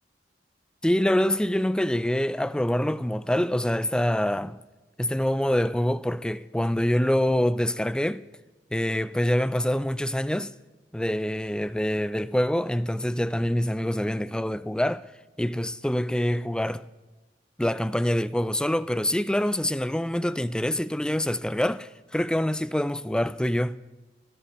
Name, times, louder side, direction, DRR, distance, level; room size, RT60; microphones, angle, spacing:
voice 1, 0.8-4.6 5.0-8.2 8.7-10.5 10.9-15.1 15.4-16.9 17.6-23.8, left 1 dB, 5° left, 0.3 m, -25 dB
26.0 x 13.0 x 3.1 m
head